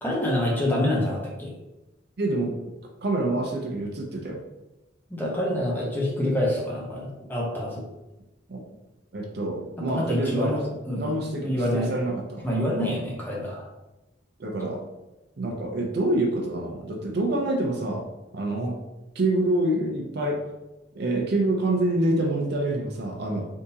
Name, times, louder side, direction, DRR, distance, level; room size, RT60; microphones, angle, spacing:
voice 1, 0.0-1.5 5.1-7.8 9.8-10.6 10.9-11.1 11.4-11.9 12.4-13.7, left 1 dB, 10° left, -3 dB, 0.7 m, -26 dB
voice 2, 2.2-2.6 3.0-4.4 8.5-8.6 9.1-12.5 14.4-14.8 15.4-18.0 18.3-18.8 19.2-20.4 20.9-23.5, right 1 dB, 60° right, 1 dB, 0.6 m, -26 dB
3.5 x 2.8 x 2.7 m, 1.0 s
head